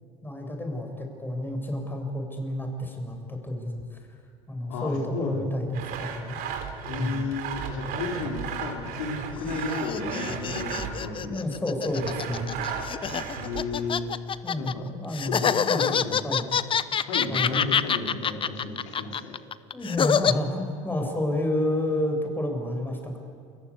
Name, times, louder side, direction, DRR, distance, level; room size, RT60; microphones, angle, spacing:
voice 1, 0.2-3.8 4.5-6.4 6.9-7.2 11.3-12.6 14.4-16.5 17.3-17.6 19.7-23.2, left 1 dB, 10° left, 3 dB, 6.7 m, -30 dB
voice 2, 4.7-5.5 6.8-11.4 13.3-14.0 14.6-14.8 15.4-16.2 17.1-19.4, left 3 dB, 85° left, 0 dB, 4.7 m, -33 dB
Sawing, 5.7-11.1 11.9-13.9, right 7 dB, 60° right, 3.8 m, -35 dB
sound 1, 9.3-14.7 15.1-20.3, left 7 dB, 30° left, 0.9 m, -26 dB
30.0 x 23.0 x 8.4 m, 2.3 s
supercardioid pair, 90°, 17 cm